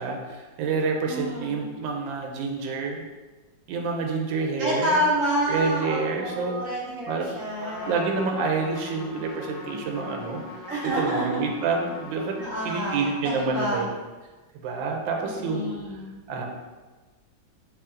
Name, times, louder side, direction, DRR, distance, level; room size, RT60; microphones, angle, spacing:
voice 1, 0.0-3.0 3.7-5.0 5.5-6.5 7.1-7.3 7.8-12.3 12.6-13.9 14.5-15.7 16.3-16.4, right 4 dB, 90° right, 2 dB, 1.3 m, -28 dB
voice 2, 1.1-1.8 4.6-7.9 10.7-11.4 12.4-13.9 15.2-16.2, equal, 55° right, -5 dB, 1.1 m, -28 dB
Trumpet, 7.6-13.8, left 3 dB, 75° left, 1.2 m, -42 dB
3.3 x 3.0 x 3.7 m, 1.3 s
omnidirectional pair, 2.0 m